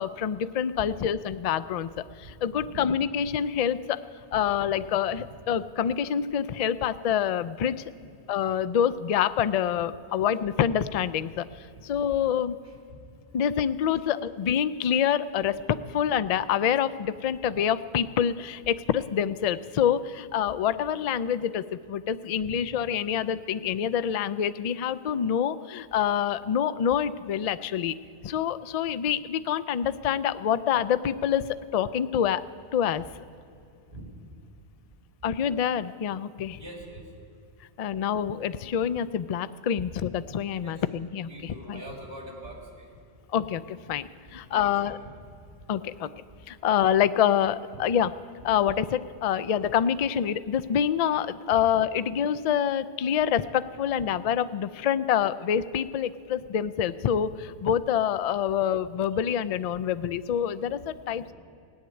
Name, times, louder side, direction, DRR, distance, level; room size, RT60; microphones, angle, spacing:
voice 1, 0.0-4.0 4.3-7.8 8.3-12.6 13.3-28.0 28.2-32.4 32.7-33.0 35.2-36.6 37.8-41.8 43.3-45.0 45.7-46.1 46.5-48.1 48.4-61.3, left 9 dB, 60° left, 14 dB, 0.4 m, -26 dB
voice 2, 36.6-37.1 40.6-40.8 41.3-42.9 44.5-44.7 49.3-49.4 51.5-51.6, right 1 dB, 50° right, -1 dB, 3.0 m, -43 dB
17.0 x 8.1 x 9.4 m, 2.5 s
omnidirectional pair, 1.2 m